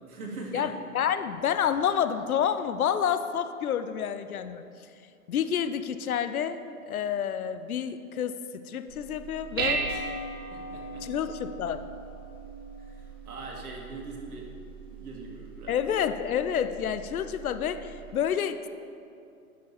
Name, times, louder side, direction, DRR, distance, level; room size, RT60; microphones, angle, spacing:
voice 1, 0.0-0.7 9.9-10.1 10.5-11.1 12.8-14.5 14.9-15.9, right 3 dB, 75° right, -1 dB, 2.1 m, -42 dB
voice 2, 0.5-4.6 5.3-6.6 6.9-9.9 11.0-11.8 15.7-18.7, left 8 dB, 70° left, 11 dB, 0.7 m, -29 dB
Dishes pots and pans, 8.9-18.1, right 4 dB, 15° right, 0.4 m, -38 dB
10.5 x 6.2 x 4.1 m, 2.5 s
hypercardioid pair, 135°, 45 cm